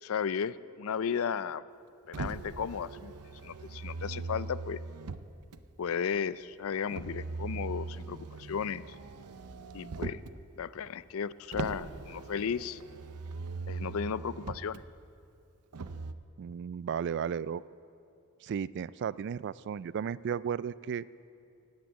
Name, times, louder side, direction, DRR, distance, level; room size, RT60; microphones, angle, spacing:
voice 1, 0.0-1.6 2.1-3.1 3.4-4.8 5.8-8.8 9.7-10.2 10.6-12.8 13.7-14.8, left 7 dB, 65° left, 17 dB, 0.4 m, -34 dB
Motor vehicle (road), 2.1-5.6 6.9-10.4 11.5-14.8 15.7-16.1, right 4 dB, 90° right, 0.6 m, -40 dB
voice 2, 16.4-17.6 18.4-21.1, right 7 dB, 50° right, 19 dB, 0.3 m, -34 dB
18.0 x 8.8 x 8.1 m, 2.5 s
head